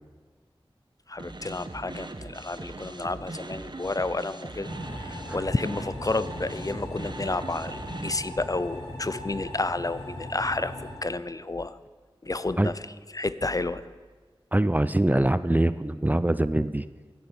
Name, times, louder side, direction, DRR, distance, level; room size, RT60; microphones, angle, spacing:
voice 1, 1.1-4.7 5.0-11.8 12.2-13.9, left 2 dB, 40° left, 15 dB, 0.6 m, -31 dB
sound 1, 1.2-8.1, right 2 dB, 50° right, 1.2 m, -40 dB
sound 2, 4.6-10.9, left 1 dB, 80° left, 5.4 m, -39 dB
voice 2, 14.5-16.8, right 1 dB, 15° right, 15 dB, 0.5 m, -23 dB
15.0 x 9.9 x 7.0 m, 1.4 s
wide cardioid pair, 45°, 10 cm